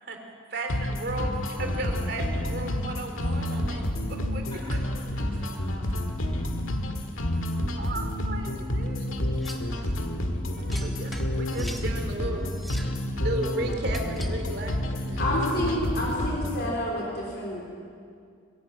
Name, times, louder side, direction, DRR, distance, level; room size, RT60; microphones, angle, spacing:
voice 1, 0.5-3.8 4.1-4.5 4.7-4.8 7.8-9.2 9.8-9.9 10.4-12.4 13.1-15.4, right 1 dB, 50° right, 4 dB, 2.9 m, -35 dB
sound 1, 0.7-16.7, left 1 dB, 85° left, 1.8 m, -29 dB
Sliding door, 1.5-6.7, right 1 dB, 90° right, 2.2 m, -46 dB
voice 2, 4.5-5.9 6.2-7.4 7.6-8.1 8.8-8.9 9.5-9.9, left 1 dB, 20° left, -5 dB, 6.3 m, -49 dB
sound 2, 9.4-9.7 10.7-11.9 12.5-13.0 13.9-14.4, equal, ahead, 1.3 m, -43 dB
voice 3, 15.2-17.6, left 1 dB, 50° left, -3 dB, 3.7 m, -29 dB
22.0 x 15.5 x 9.0 m, 2.3 s
head